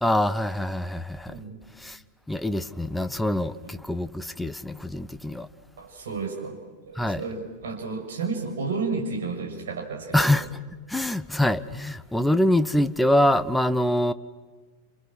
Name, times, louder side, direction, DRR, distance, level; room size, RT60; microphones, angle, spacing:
voice 1, 0.0-1.4 1.8-2.0 2.3-5.5 6.9-7.2 10.1-10.5 10.9-14.1, left 1 dB, 5° left, 1.0 m, -24 dB
voice 2, 1.3-1.6 3.6-3.7 5.8-6.6 6.9-10.3, right 4 dB, 60° right, 6.1 m, -32 dB
28.5 x 28.0 x 6.3 m
figure-of-eight pair, 90°, 0 cm